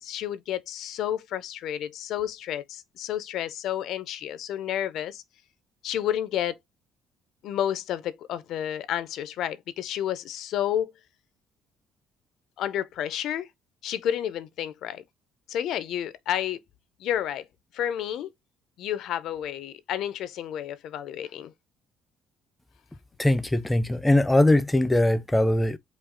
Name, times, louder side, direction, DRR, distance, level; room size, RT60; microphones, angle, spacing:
voice 1, 0.0-5.2 5.8-6.6 7.4-10.9 12.6-13.5 13.8-15.0 15.5-16.6 17.0-17.5 17.7-18.3 18.8-21.5, left 10 dB, 65° left, 0.6 m, -30 dB
voice 2, 23.2-25.8, left 1 dB, 10° left, 0.4 m, -21 dB
5.0 x 2.4 x 3.7 m
cardioid pair, 140°, 0 cm